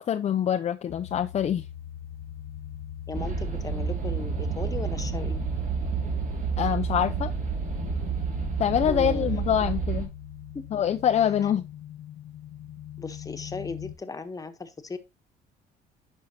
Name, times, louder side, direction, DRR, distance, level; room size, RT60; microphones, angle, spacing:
voice 1, 0.0-1.6 6.6-7.3 8.6-10.1 10.7-11.6, left 9 dB, 40° left, 0.6 m, -25 dB
sound 1, 0.9-14.0, left 10 dB, 60° left, 0.9 m, -40 dB
voice 2, 3.1-5.4 8.8-9.4 10.5-10.8 13.0-15.0, left 4 dB, 20° left, 1.2 m, -37 dB
sound 2, 3.1-10.1, right 6 dB, 50° right, 3.3 m, -30 dB
10.5 x 5.6 x 2.9 m
cardioid pair, 110°, 17 cm